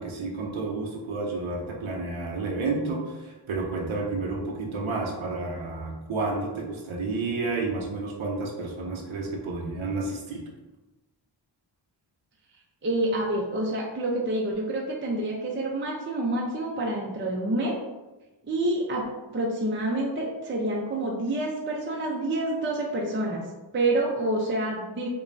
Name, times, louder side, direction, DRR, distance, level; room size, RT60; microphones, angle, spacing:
voice 1, 0.0-10.4, right 3 dB, 85° right, 0 dB, 0.7 m, -31 dB
voice 2, 12.8-17.7 18.4-19.0 19.3-23.4 23.7-25.1, right 1 dB, 25° right, -2 dB, 0.5 m, -27 dB
5.0 x 2.2 x 2.6 m, 1.1 s
wide cardioid pair, 80°, 47 cm